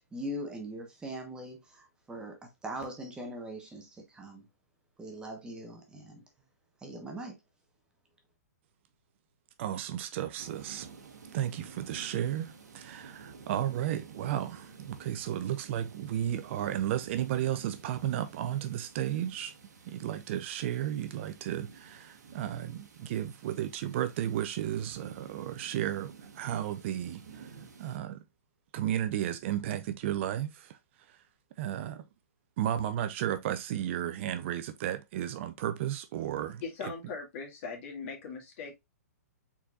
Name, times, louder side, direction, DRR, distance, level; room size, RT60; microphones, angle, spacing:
voice 1, 0.0-4.5 5.0-6.2 6.8-7.4, right 1 dB, 10° right, 0.9 m, -41 dB
voice 2, 9.6-10.9 11.3-19.5 19.8-28.2 28.7-30.8 31.1-31.2 31.6-32.0 32.6-36.6, right 11 dB, 45° right, 0.5 m, -33 dB
sound 1, 10.4-28.0, right 5 dB, 90° right, 1.0 m, -52 dB
voice 3, 36.6-38.8, left 5 dB, 50° left, 1.8 m, -40 dB
4.4 x 4.1 x 2.3 m
hypercardioid pair, 145°, 9 cm